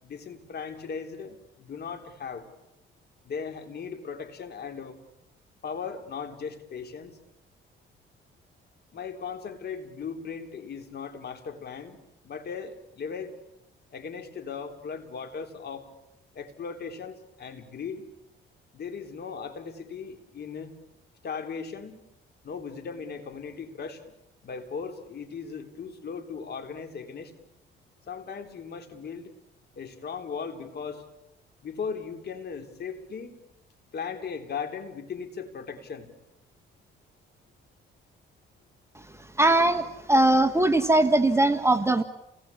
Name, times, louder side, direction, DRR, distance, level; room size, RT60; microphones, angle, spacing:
voice 1, 0.0-2.5 3.2-5.0 5.6-7.2 8.9-12.0 12.2-13.3 13.9-15.9 16.3-18.0 18.7-20.8 21.2-22.0 22.4-24.0 24.4-27.3 28.1-29.3 29.8-31.0 31.6-33.4 33.9-36.1, left 6 dB, 55° left, 5 dB, 3.7 m, -37 dB
voice 2, 38.9-42.0, right 2 dB, 15° right, 8 dB, 1.3 m, -21 dB
29.5 x 19.5 x 8.6 m, 0.94 s
cardioid pair, 90°, 20 cm